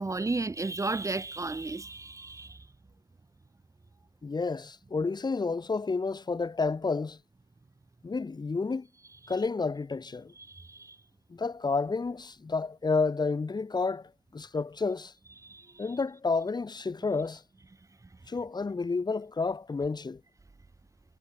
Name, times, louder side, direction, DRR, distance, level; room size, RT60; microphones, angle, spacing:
voice 1, 0.0-2.7 9.2-9.3 10.3-11.0 15.4-16.0, right 3 dB, 10° right, 4.7 m, -34 dB
voice 2, 4.2-7.2 8.0-8.9 9.3-10.3 11.3-15.1 15.8-17.4 18.3-20.2, left 4 dB, 15° left, 5.7 m, -30 dB
figure-of-eight pair, 85°, 31 cm